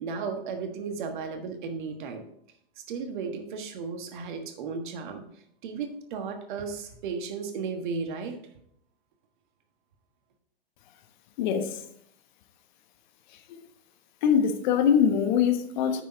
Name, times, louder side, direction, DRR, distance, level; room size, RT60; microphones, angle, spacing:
voice 1, 0.0-2.2 2.9-5.2 5.6-8.4, right 5 dB, 55° right, 6 dB, 1.4 m, -34 dB
voice 2, 11.4-11.8 13.5-13.6 14.2-16.0, left 8 dB, 50° left, 8 dB, 1.1 m, -23 dB
9.0 x 6.2 x 3.8 m, 0.68 s
figure-of-eight pair, 100°, 30 cm